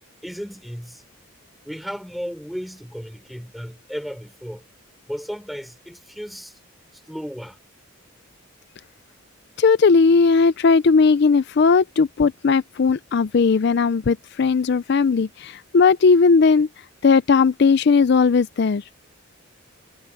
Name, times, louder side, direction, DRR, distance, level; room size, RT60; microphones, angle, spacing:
voice 1, 0.2-1.0 1.6-4.6 5.1-6.6 6.9-7.6, equal, ahead, 3.4 m, -34 dB
voice 2, 9.6-16.7 17.0-18.8, left 4 dB, 50° left, 0.4 m, -17 dB
head